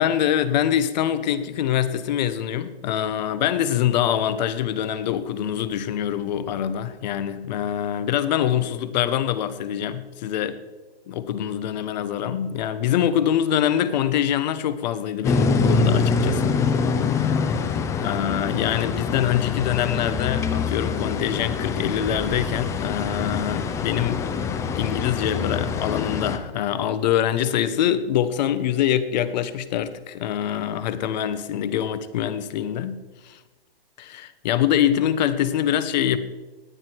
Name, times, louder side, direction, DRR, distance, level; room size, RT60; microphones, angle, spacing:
voice 1, 0.0-10.6 11.1-16.6 18.0-24.2 24.7-33.0 33.2-33.4 34.0-36.2, left 10 dB, 45° left, 1.1 m, -24 dB
sound 1, 15.2-26.4, left 5 dB, 10° left, 0.6 m, -25 dB
18.0 x 9.9 x 4.6 m
hypercardioid pair, 145°, 31 cm